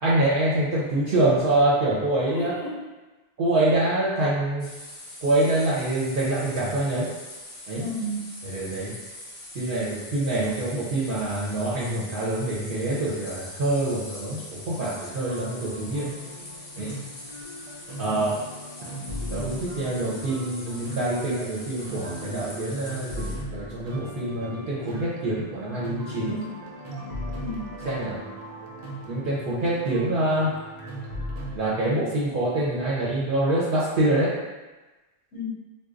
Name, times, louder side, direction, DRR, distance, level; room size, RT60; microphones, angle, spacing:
voice 1, 0.0-2.5 3.4-4.7 5.2-7.1 7.7-7.9 8.4-8.9 9.5-16.1 16.8-16.9 18.0-18.4 19.3-26.4 27.8-28.2 29.1-30.5 31.5-34.3, right 1 dB, 60° right, -7 dB, 0.8 m, -25 dB
voice 2, 2.3-2.8 7.7-8.3 18.0-18.2 27.4-27.7 35.3-35.5, equal, 90° left, -2 dB, 1.0 m, -33 dB
sound 1, 4.6-23.4, left 1 dB, 40° left, 0.6 m, -42 dB
sound 2, 14.8-31.6, equal, 90° right, 0.9 m, -38 dB
3.9 x 2.2 x 2.4 m, 1.2 s
omnidirectional pair, 1.1 m